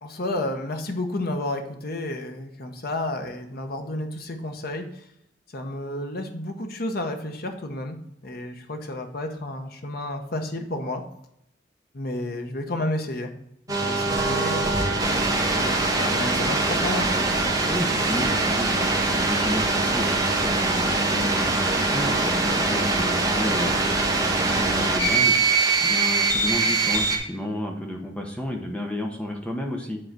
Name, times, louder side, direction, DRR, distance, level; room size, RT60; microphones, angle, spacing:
voice 1, 0.0-5.1 5.5-11.0 11.9-13.3 13.7-17.1, left 1 dB, 55° left, 5 dB, 1.0 m, -31 dB
sound 1, 13.7-27.2, right 3 dB, 20° right, 1.3 m, -23 dB
voice 2, 17.7-30.0, left 1 dB, 5° left, 1 dB, 1.0 m, -32 dB
7.7 x 3.9 x 6.0 m, 0.80 s
head